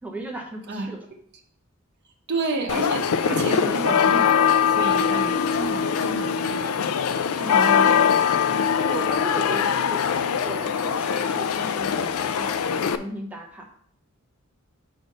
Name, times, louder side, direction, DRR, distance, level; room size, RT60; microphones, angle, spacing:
voice 1, 0.0-1.1 7.5-8.0 8.9-10.1 10.4-13.6, right 2 dB, 5° right, -1 dB, 0.8 m, -36 dB
voice 2, 2.3-6.8 7.3-8.3, right 2 dB, 55° right, 2 dB, 1.1 m, -30 dB
sound 1, 2.7-13.0, left 7 dB, 85° left, 0.4 m, -22 dB
6.4 x 3.4 x 5.4 m, 0.62 s
head